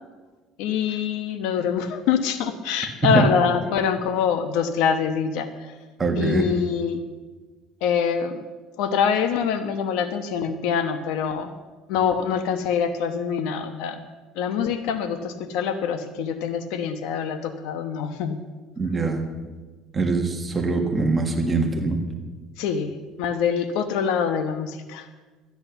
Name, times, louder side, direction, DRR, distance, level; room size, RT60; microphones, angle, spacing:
voice 1, 0.6-5.7 6.2-7.0 7.8-8.4 8.8-11.5 11.9-14.0 14.3-18.4 22.6-22.9 23.2-25.1, left 7 dB, 80° left, 9 dB, 1.0 m, -25 dB
voice 2, 6.0-6.5 18.8-19.2 19.9-22.0, right 3 dB, 20° right, 4 dB, 1.5 m, -23 dB
12.5 x 10.5 x 6.9 m, 1.3 s
cardioid pair, 145°, 0 cm